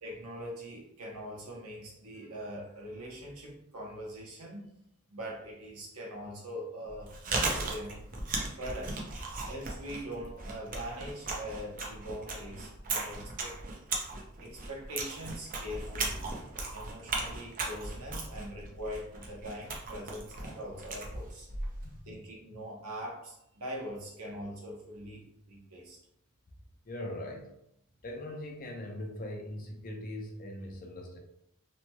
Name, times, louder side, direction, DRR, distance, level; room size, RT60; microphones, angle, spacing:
voice 1, 0.0-4.7 5.1-8.0 8.6-9.0 9.5-13.6 14.4-16.3 16.7-21.5 22.0-26.0, equal, 80° right, -2 dB, 0.9 m, -42 dB
Chewing mastication, 6.9-22.0, right 3 dB, 40° right, 0.5 m, -37 dB
voice 2, 21.8-22.2 26.9-27.5 28.0-31.2, left 1 dB, 40° left, 2 dB, 0.5 m, -41 dB
3.0 x 2.8 x 2.2 m, 0.77 s
head